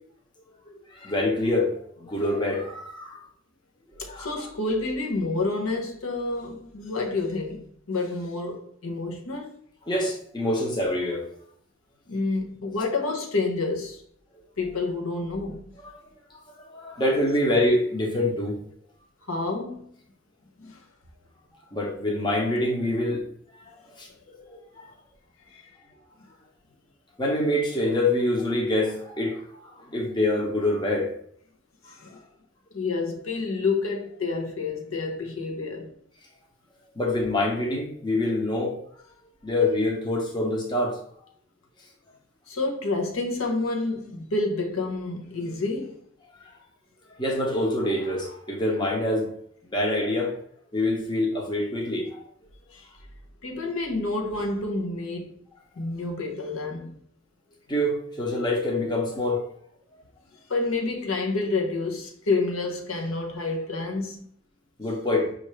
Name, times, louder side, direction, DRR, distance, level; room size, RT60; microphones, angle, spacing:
voice 1, 0.9-1.7 2.0-3.2 4.1-4.3 9.9-11.3 16.7-18.6 21.7-23.2 23.9-24.9 27.2-31.1 37.0-38.8 39.4-41.0 47.2-49.3 49.7-50.3 50.7-52.2 57.7-59.4 64.8-65.3, left 1 dB, 20° left, 0.8 m, -25 dB
voice 2, 4.0-9.6 12.1-14.0 14.6-15.6 19.3-19.9 20.6-20.8 25.5-25.6 31.9-32.2 32.7-35.9 42.5-46.0 52.7-52.9 53.4-55.4 55.8-57.0 60.5-64.3, left 3 dB, 85° left, 0.9 m, -29 dB
5.6 x 2.5 x 3.1 m
head